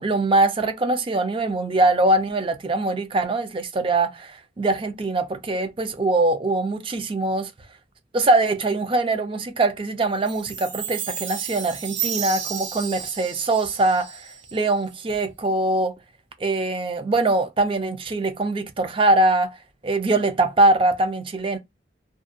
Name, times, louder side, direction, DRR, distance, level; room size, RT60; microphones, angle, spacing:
voice 1, 0.0-7.5 8.1-15.9 16.4-19.6 19.8-21.6, right 2 dB, 25° right, 0.4 m, -22 dB
Chime, 10.3-14.7, right 8 dB, 70° right, 0.9 m, -32 dB
2.5 x 2.2 x 2.5 m
head